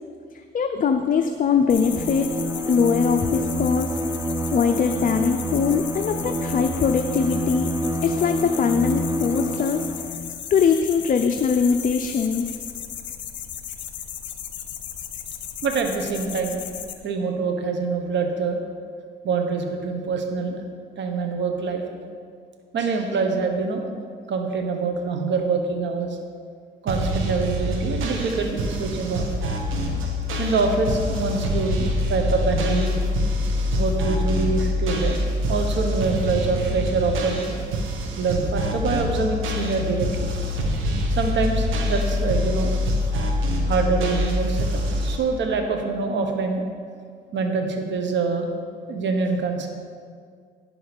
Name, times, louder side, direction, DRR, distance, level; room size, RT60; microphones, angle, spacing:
voice 1, 0.5-2.3 2.7-4.0 4.5-7.7 8.0-9.8 10.5-12.5, left 6 dB, 45° left, 6 dB, 0.6 m, -21 dB
sound 1, 1.7-16.9, left 9 dB, 70° left, 0.9 m, -36 dB
Bowed string instrument, 1.7-10.3, equal, 15° right, 0.7 m, -28 dB
voice 2, 15.6-16.6 17.0-18.6 19.2-20.6 21.0-21.8 22.7-23.9 24.3-26.2 26.8-29.3 30.4-32.9 33.8-35.2 35.5-37.5 38.2-40.3 41.2-42.8 43.7-46.6 47.3-48.5 48.9-49.7, right 4 dB, 65° right, 4 dB, 1.4 m, -25 dB
sound 2, 26.9-45.2, left 1 dB, 85° right, 1.4 m, -25 dB
9.7 x 6.3 x 6.9 m, 2.1 s
cardioid pair, 90°, 20 cm